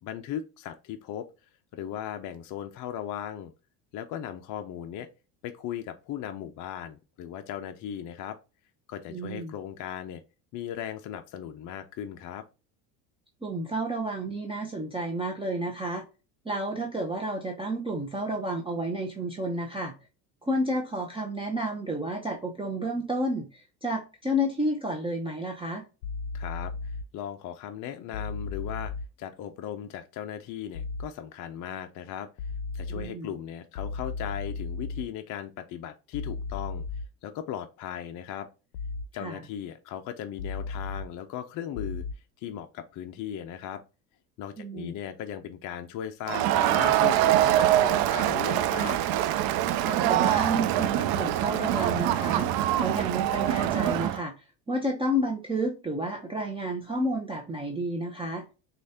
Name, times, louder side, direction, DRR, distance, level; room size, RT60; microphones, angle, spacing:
voice 1, 0.0-1.3 1.7-3.5 3.9-5.1 5.4-8.4 8.9-10.2 10.5-12.4 26.3-28.9 29.2-32.3 32.7-36.8 37.2-38.5 39.1-43.8 44.4-49.0, left 10 dB, 40° left, 0.5 m, -37 dB
voice 2, 9.1-9.5 13.4-16.0 16.4-19.9 20.4-25.8 32.9-33.3 39.1-39.4 44.6-44.9 49.8-58.4, equal, 10° right, 0.7 m, -31 dB
sound 1, 26.0-27.0 28.1-29.1 30.7-31.1 32.4-33.0 33.8-35.0 36.1-37.1 38.7-39.1 40.4-41.0 41.8-42.1, left 4 dB, 80° left, 0.6 m, -34 dB
Crowd, 46.3-54.2, right 12 dB, 50° right, 0.5 m, -24 dB
6.2 x 2.5 x 2.7 m
supercardioid pair, 90°, 50 cm